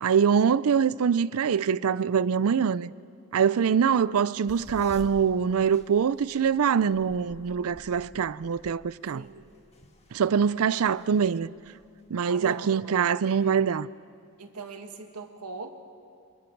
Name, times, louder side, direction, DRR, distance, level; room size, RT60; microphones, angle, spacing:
voice 1, 0.0-2.9 3.3-9.2 10.1-11.5 12.1-13.9, right 7 dB, 70° right, 0.4 m, -24 dB
voice 2, 3.4-4.0 9.1-9.5 10.5-10.6 12.2-13.7 14.4-15.7, right 3 dB, 90° right, 1.7 m, -42 dB
sound 1, 4.0-12.8, left 1 dB, 30° left, 1.7 m, -51 dB
27.5 x 27.0 x 4.6 m
head